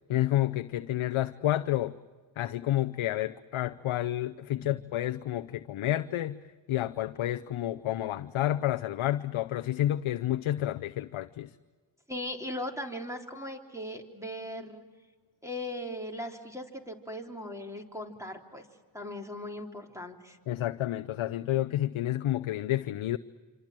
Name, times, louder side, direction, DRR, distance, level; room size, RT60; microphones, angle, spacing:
voice 1, 0.1-2.0 2.4-6.4 6.7-11.5 20.5-23.2, left 13 dB, 90° left, 9 dB, 0.7 m, -30 dB
voice 2, 12.1-14.8 15.4-18.6 18.9-20.4, left 1 dB, 5° right, 2 dB, 3.5 m, -38 dB
26.5 x 26.5 x 7.5 m, 1.4 s
cardioid pair, 50°, 47 cm